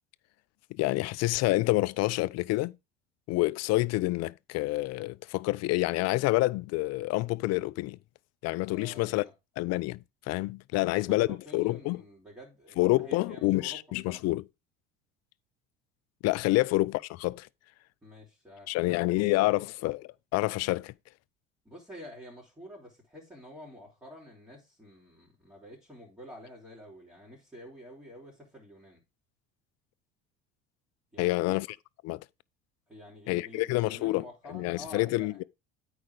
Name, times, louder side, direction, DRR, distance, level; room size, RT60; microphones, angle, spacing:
voice 1, 0.7-2.7 3.3-8.0 8.4-9.2 9.6-11.3 11.5-12.0 12.8-14.4 16.2-17.5 18.7-20.9 31.2-31.7 32.0-32.2 33.3-35.4, left 20 dB, 55° left, 0.5 m, -28 dB
voice 2, 8.7-9.3 10.7-13.8 14.1-14.2 16.5-16.6 18.0-19.6 21.6-29.0 31.1-31.6 32.9-35.4, equal, 10° right, 4.5 m, -48 dB
8.7 x 5.0 x 5.0 m
hypercardioid pair, 70°, 31 cm